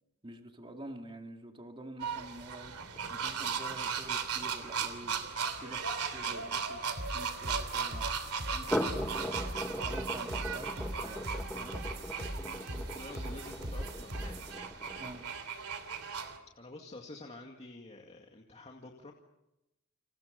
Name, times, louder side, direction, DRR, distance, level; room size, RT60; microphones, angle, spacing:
voice 1, 0.2-2.7 3.1-5.2 5.5-8.7 8.9-9.4 9.8-11.2 11.5-11.8 15.0-15.2, right 1 dB, 25° right, 3 dB, 2.4 m, -48 dB
sound 1, 2.0-16.4, right 6 dB, 80° right, 3.1 m, -37 dB
sound 2, 2.8-7.4 8.5-15.2, left 1 dB, 5° left, 1.1 m, -40 dB
sound 3, 7.0-14.6, right 1 dB, 50° right, 4.8 m, -41 dB
voice 2, 12.3-14.4 16.6-19.1, left 2 dB, 30° left, 1 dB, 2.2 m, -49 dB
30.0 x 27.5 x 5.4 m, 0.90 s
head